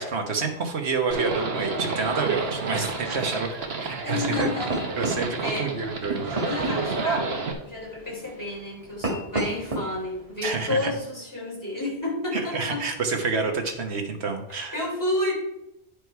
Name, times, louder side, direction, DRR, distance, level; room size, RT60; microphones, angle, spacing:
voice 1, 0.0-4.5 4.9-6.2 10.4-10.9 12.3-14.7, right 4 dB, 85° right, 4 dB, 1.5 m, -28 dB
Livestock farm animals working animals, 1.1-7.5, right 4 dB, 70° right, 1.3 m, -30 dB
sound 1, 2.4-10.9, right 1 dB, 35° right, 1.9 m, -35 dB
voice 2, 4.0-5.7 6.4-12.9 14.5-15.3, left 2 dB, 15° left, -4 dB, 3.4 m, -31 dB
9.5 x 5.2 x 4.6 m, 0.86 s
omnidirectional pair, 1.1 m